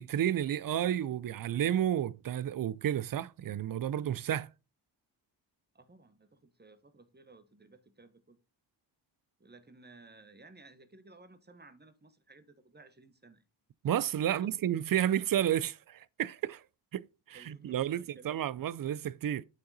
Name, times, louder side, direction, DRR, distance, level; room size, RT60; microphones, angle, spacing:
voice 1, 0.0-4.5 13.8-16.6 16.9-19.4, right 10 dB, 45° right, 0.5 m, -31 dB
voice 2, 5.7-8.4 9.4-13.4 14.3-14.5 17.3-18.7, right 3 dB, 20° right, 1.2 m, -57 dB
8.5 x 3.8 x 4.1 m
cardioid pair, 45°, 47 cm